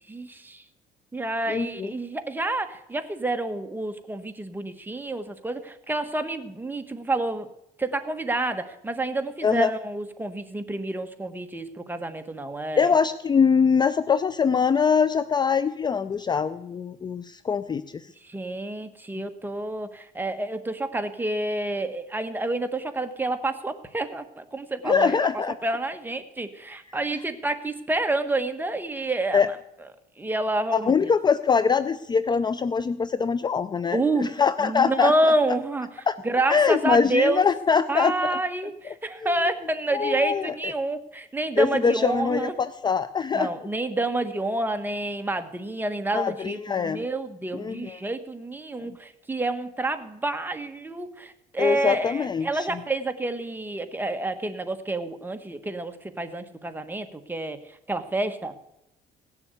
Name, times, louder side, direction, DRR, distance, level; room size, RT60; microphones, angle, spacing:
voice 1, 0.1-0.6 1.1-7.5 7.8-12.9 18.2-25.3 25.6-29.6 30.2-31.1 33.9-34.3 34.6-37.5 37.9-42.6 43.3-57.6 57.9-58.6, right 2 dB, 10° right, 7 dB, 1.3 m, -28 dB
voice 2, 1.5-1.9 9.4-9.7 12.8-17.8 24.9-25.5 29.3-29.5 30.8-35.1 36.1-36.2 36.5-38.4 39.9-40.5 41.6-43.5 46.1-47.0 47.5-48.0 51.6-52.7, left 6 dB, 25° left, 14 dB, 0.5 m, -23 dB
17.5 x 7.2 x 8.2 m, 0.83 s
cardioid pair, 110°, 17 cm